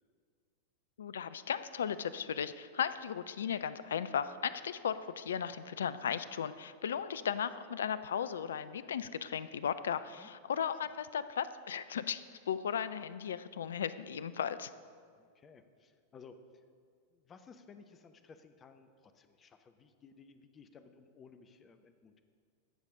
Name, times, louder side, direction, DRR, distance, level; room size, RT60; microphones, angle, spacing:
voice 1, 1.0-14.7, left 8 dB, 65° left, 14 dB, 0.3 m, -36 dB
voice 2, 10.0-10.3 15.2-16.4 17.1-22.2, left 5 dB, 25° left, 9 dB, 0.6 m, -57 dB
14.5 x 6.5 x 3.7 m, 2.1 s
figure-of-eight pair, 90°, 0 cm